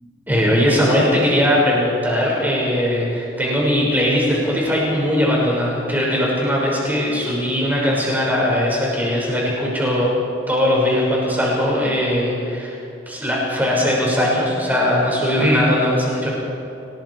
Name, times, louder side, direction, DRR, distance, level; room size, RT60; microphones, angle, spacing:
voice 1, 0.3-10.1 10.5-12.8 13.1-16.3, equal, 10° right, -4 dB, 6.1 m, -19 dB
29.5 x 19.5 x 4.9 m, 2.9 s
head